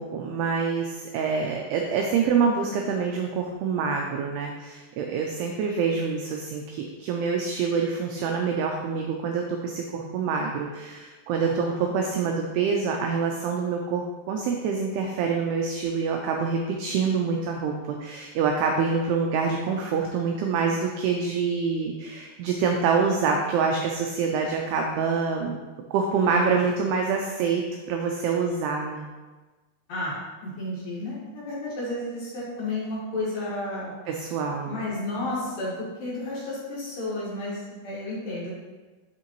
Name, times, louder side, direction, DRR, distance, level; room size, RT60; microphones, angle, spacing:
voice 1, 0.0-25.6 25.9-29.1 34.1-34.8, right 5 dB, 90° right, 2 dB, 2.3 m, -26 dB
voice 2, 11.4-11.9 26.1-26.6 29.9-30.1 30.4-33.9 34.7-35.7 36.0-38.6, left 2 dB, 60° left, -7 dB, 2.8 m, -32 dB
11.0 x 3.7 x 3.0 m, 1.3 s
omnidirectional pair, 5.3 m